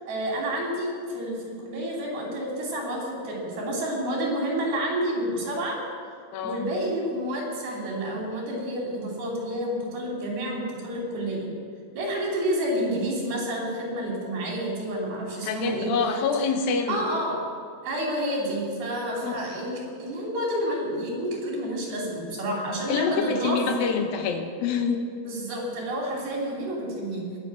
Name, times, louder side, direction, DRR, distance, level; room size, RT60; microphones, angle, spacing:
voice 1, 0.1-5.8 6.4-11.5 11.9-16.2 16.9-17.4 17.8-24.0 25.2-27.2, right 1 dB, 90° right, -2 dB, 5.1 m, -29 dB
voice 2, 6.3-6.7 15.4-17.0 19.2-19.5 22.9-25.0, left 5 dB, 80° left, 5 dB, 2.8 m, -26 dB
21.0 x 7.1 x 6.4 m, 2.3 s
omnidirectional pair, 4.2 m